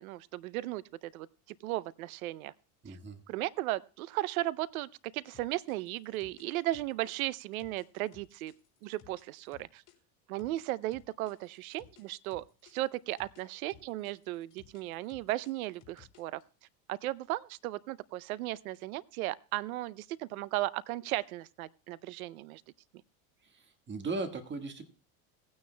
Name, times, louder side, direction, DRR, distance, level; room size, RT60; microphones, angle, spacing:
voice 1, 0.0-2.5 2.9-3.0 3.3-8.5 8.8-9.8 10.3-16.4 16.9-22.6, right 16 dB, 90° right, 0.6 m, -36 dB
voice 2, 2.8-3.2 23.4-24.9, right 3 dB, 25° right, 1.6 m, -38 dB
sound 1, 5.3-10.0 10.4-13.4 13.7-16.4, left 12 dB, 45° left, 3.4 m, -59 dB
18.0 x 9.6 x 2.2 m
supercardioid pair, 110°, 41 cm